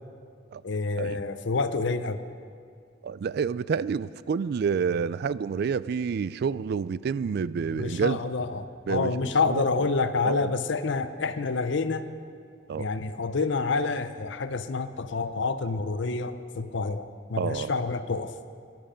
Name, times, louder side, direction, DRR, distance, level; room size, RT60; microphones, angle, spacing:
voice 1, 0.6-2.2 7.7-12.1 12.8-18.3, left 4 dB, 65° left, 11 dB, 0.7 m, -28 dB
voice 2, 3.0-8.2 8.9-9.1 9.5-9.8 10.2-10.5 12.7-12.9 17.4-17.7, right 6 dB, 55° right, 17 dB, 0.3 m, -28 dB
18.0 x 12.0 x 5.1 m, 2.2 s
head